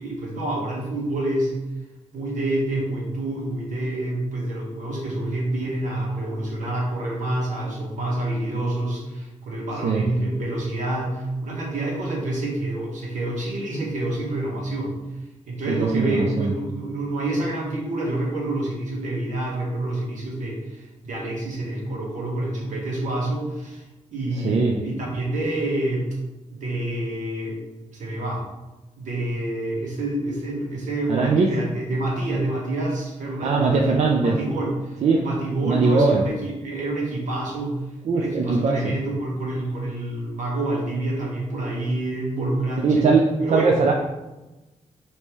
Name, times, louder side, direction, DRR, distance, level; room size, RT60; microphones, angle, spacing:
voice 1, 0.0-1.5 2.1-14.9 15.5-23.8 24.1-26.1 26.5-27.6 27.9-28.4 29.0-34.0 34.2-37.8 38.1-43.1 43.4-43.8, right 1 dB, 85° right, -3 dB, 1.3 m, -27 dB
voice 2, 15.7-16.5 24.3-24.8 31.1-31.5 33.4-34.4 35.0-35.2 35.6-36.2 38.0-38.9 42.8-43.9, right 4 dB, 65° right, 0 dB, 0.4 m, -20 dB
5.2 x 2.8 x 3.1 m, 1.1 s
wide cardioid pair, 140°, 13 cm